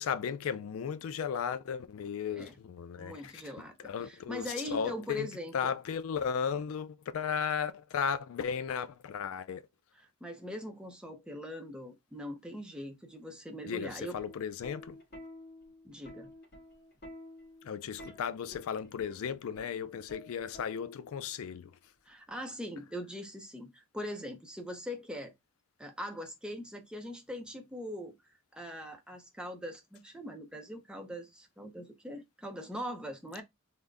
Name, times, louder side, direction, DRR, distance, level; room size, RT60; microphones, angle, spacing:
voice 1, 0.0-3.4 3.8-5.3 5.5-9.6 13.6-15.0 17.6-21.7, left 7 dB, 70° left, 0.3 m, -35 dB
voice 2, 3.0-5.7 9.9-14.2 15.8-16.3 22.1-25.3 25.8-28.2 28.5-33.4, equal, 5° right, 0.6 m, -41 dB
Plucked string instrument, 14.2-21.2 22.3-22.6, left 1 dB, 50° left, 1.6 m, -51 dB
3.8 x 2.1 x 3.4 m
head